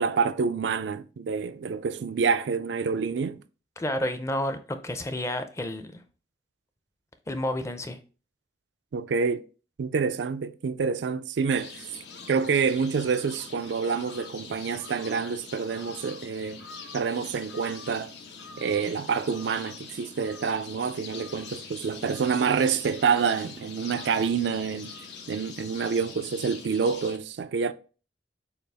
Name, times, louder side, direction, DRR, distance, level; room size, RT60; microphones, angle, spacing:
voice 1, 0.0-3.4 8.9-9.4 9.8-11.8 12.3-16.6 16.9-18.1 18.6-24.9 25.3-27.7, right 5 dB, 80° right, 0.4 m, -27 dB
voice 2, 3.8-6.0 7.3-8.0, left 1 dB, 15° left, 0.5 m, -30 dB
sound 1, 11.5-27.2, left 5 dB, 80° left, 0.9 m, -44 dB
6.6 x 2.4 x 3.4 m
head